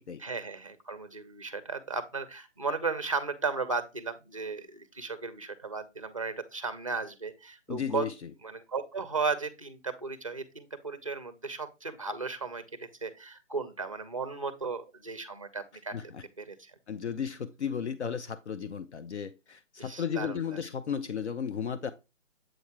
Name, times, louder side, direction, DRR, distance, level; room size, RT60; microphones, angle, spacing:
voice 1, 0.2-8.1 8.4-16.1 16.4-16.7 19.8-20.6, right 4 dB, 30° right, 0.5 m, -35 dB
voice 2, 7.7-8.3 15.9-16.2 16.9-21.9, left 7 dB, 65° left, 0.6 m, -34 dB
7.7 x 2.7 x 4.7 m
hypercardioid pair, 165°, 37 cm